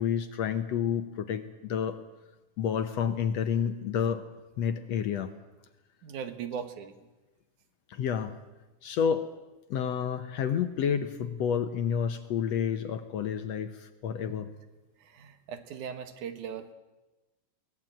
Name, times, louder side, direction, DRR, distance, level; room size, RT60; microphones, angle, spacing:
voice 1, 0.0-2.0 2.6-4.2 4.6-5.3 7.9-8.3 8.8-9.3 9.7-14.5, left 8 dB, 65° left, 9 dB, 1.8 m, -29 dB
voice 2, 6.0-6.9 14.3-14.4 15.0-16.7, right 7 dB, 70° right, 9 dB, 2.8 m, -39 dB
23.0 x 18.5 x 8.9 m, 1.1 s
omnidirectional pair, 3.8 m